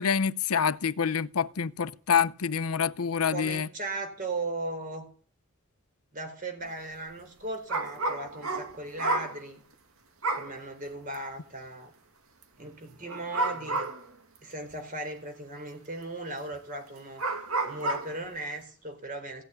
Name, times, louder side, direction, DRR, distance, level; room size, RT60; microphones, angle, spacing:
voice 1, 0.0-3.7, left 7 dB, 85° left, 0.7 m, -27 dB
voice 2, 3.3-5.1 6.1-9.6 10.3-11.9 12.6-13.9 14.4-17.2 17.6-19.4, right 2 dB, 40° right, 4.3 m, -37 dB
sound 1, 7.7-9.4 10.2-10.5 11.1-11.2 13.1-14.1 14.7-14.8 16.5-16.6 17.2-18.1, right 2 dB, 75° right, 2.2 m, -30 dB
16.5 x 8.0 x 9.6 m
head